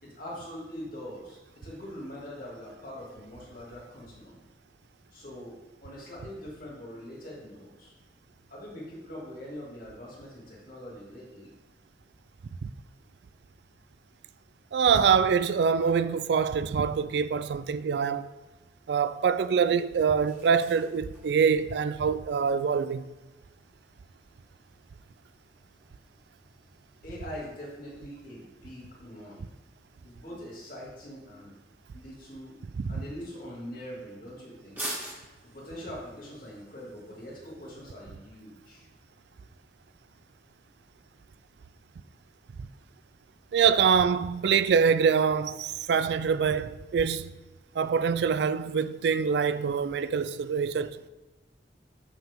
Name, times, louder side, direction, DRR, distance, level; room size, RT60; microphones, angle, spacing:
voice 1, 0.0-4.4 5.1-7.9 8.5-11.5 27.0-29.5 30.0-31.5 31.9-32.5 32.9-34.8 35.5-38.9, equal, 50° left, 2.5 m, -43 dB
voice 2, 14.7-18.3 18.9-23.0 32.8-33.0 43.5-47.3 47.8-51.1, right 6 dB, 65° right, 0.3 m, -25 dB
sound 1, 18.3-37.9, right 1 dB, 10° right, 2.0 m, -49 dB
7.3 x 5.7 x 3.6 m
head